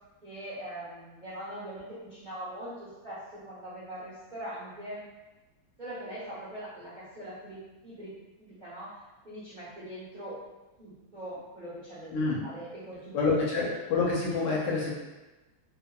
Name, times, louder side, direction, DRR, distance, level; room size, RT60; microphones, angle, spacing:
voice 1, 0.2-5.0 5.8-8.1 8.4-10.4 10.8-12.1 12.4-13.1 13.4-13.5, right 1 dB, 80° right, -11 dB, 0.4 m, -42 dB
voice 2, 13.1-14.9, left 3 dB, 75° left, -4 dB, 1.2 m, -27 dB
3.5 x 2.0 x 2.2 m, 1.1 s
omnidirectional pair, 2.2 m